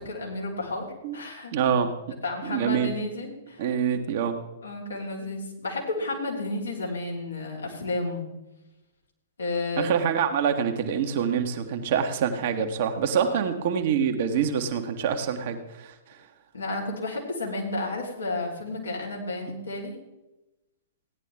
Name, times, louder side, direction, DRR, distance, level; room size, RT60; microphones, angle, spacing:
voice 1, 0.0-1.5 2.2-3.7 4.6-8.3 9.4-10.0 13.2-13.5 16.5-19.9, left 2 dB, 70° left, -3 dB, 3.7 m, -32 dB
voice 2, 1.5-1.9 2.4-2.9 3.6-4.4 9.8-16.2, right 7 dB, 45° right, 5 dB, 1.3 m, -26 dB
16.5 x 10.5 x 3.5 m, 0.98 s
figure-of-eight pair, 110°, 0 cm